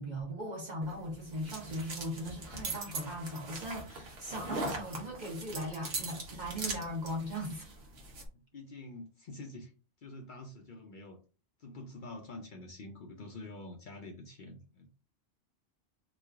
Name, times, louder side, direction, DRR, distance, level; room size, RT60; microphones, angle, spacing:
voice 1, 0.0-7.7, equal, 45° right, 1.1 m, -39 dB
sound 1, 0.8-8.3, right 2 dB, 65° right, 1.1 m, -41 dB
voice 2, 8.3-9.7 10.0-11.2 11.6-14.9, left 2 dB, 55° left, 0.6 m, -47 dB
3.0 x 2.3 x 3.4 m
omnidirectional pair, 1.1 m